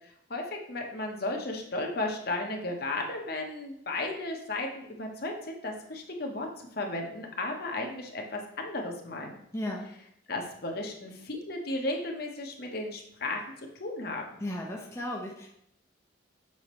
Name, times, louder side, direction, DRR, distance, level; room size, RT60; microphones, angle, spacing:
voice 1, 0.3-6.5 6.8-9.4 10.3-13.4 13.8-14.2, left 2 dB, 50° left, 2 dB, 1.1 m, -34 dB
voice 2, 9.5-9.9 14.4-15.5, left 1 dB, 15° left, -3 dB, 0.7 m, -35 dB
7.1 x 5.5 x 3.1 m, 0.73 s
head